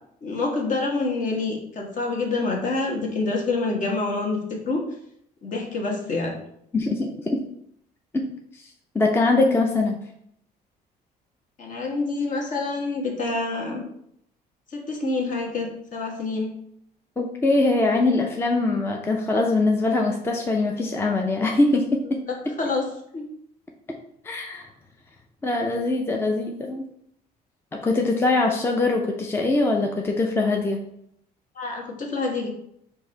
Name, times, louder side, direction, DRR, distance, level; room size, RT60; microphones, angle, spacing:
voice 1, 0.2-4.4 4.7-4.8 5.4-6.4 11.6-13.8 14.7-16.5 22.6-22.8 23.1-23.3 31.6-32.5, left 3 dB, 50° left, 0 dB, 1.3 m, -27 dB
voice 2, 6.7-7.4 8.1-8.3 8.5-10.0 17.2-22.2 24.2-24.7 25.4-26.8 27.8-30.8, left 2 dB, 15° left, 1 dB, 0.5 m, -22 dB
4.6 x 2.6 x 4.4 m, 0.72 s
cardioid pair, 110°, 17 cm